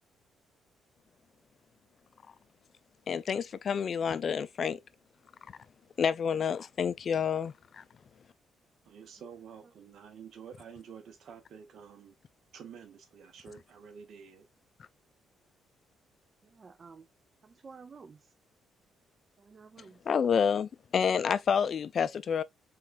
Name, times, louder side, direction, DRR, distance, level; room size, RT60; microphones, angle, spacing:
voice 1, 3.1-4.8 6.0-7.8 20.1-22.4, left 7 dB, 50° left, 0.4 m, -29 dB
voice 2, 8.8-12.1 12.5-14.5, right 7 dB, 65° right, 1.2 m, -49 dB
voice 3, 16.4-17.1 17.4-18.2 19.4-20.0, right 5 dB, 40° right, 0.5 m, -51 dB
4.2 x 3.7 x 2.5 m
cardioid pair, 90°, 0 cm